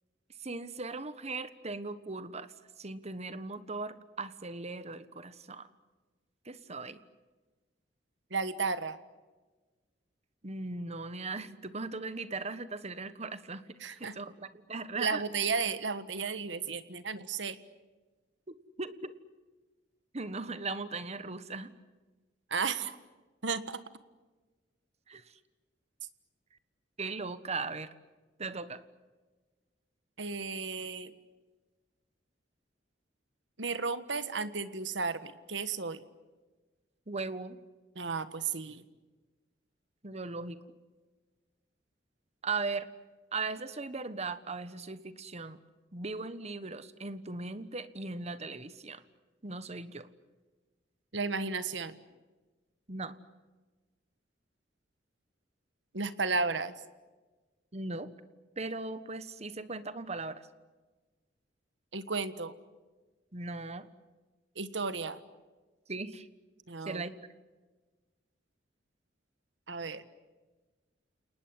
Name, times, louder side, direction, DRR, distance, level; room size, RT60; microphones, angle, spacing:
voice 1, 0.4-2.5 2.8-5.7 6.4-7.0 10.4-13.6 13.9-15.2 18.5-19.1 20.1-21.7 25.1-25.2 27.0-27.9 28.4-28.8 37.1-37.6 40.0-40.6 42.4-42.9 43.3-45.6 45.9-49.0 49.4-50.1 52.9-53.2 57.7-58.1 58.6-60.4 63.3-63.9 65.9-66.3 66.8-67.1, right 3 dB, 35° right, 13 dB, 1.3 m, -38 dB
voice 2, 8.3-9.0 13.8-14.1 14.9-17.6 22.5-23.0 23.4-23.8 30.2-31.1 33.6-36.0 37.9-38.8 51.1-52.0 55.9-56.7 61.9-62.5 64.5-65.2 66.7-67.0 69.7-70.0, right 4 dB, 75° right, 12 dB, 1.5 m, -33 dB
29.5 x 19.5 x 9.7 m, 1.3 s
head